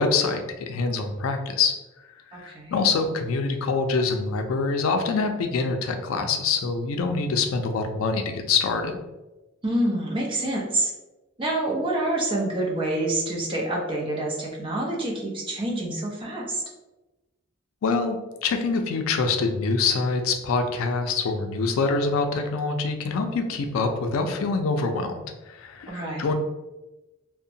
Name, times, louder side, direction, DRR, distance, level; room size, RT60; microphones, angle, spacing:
voice 1, 0.0-1.7 2.3-9.0 17.8-25.1 25.5-26.3, left 4 dB, 85° left, 5 dB, 0.4 m, -25 dB
voice 2, 2.3-2.8 9.6-10.9 11.4-16.6 25.9-26.3, right 1 dB, 25° right, -3 dB, 0.6 m, -27 dB
2.8 x 2.1 x 2.6 m, 1.1 s
head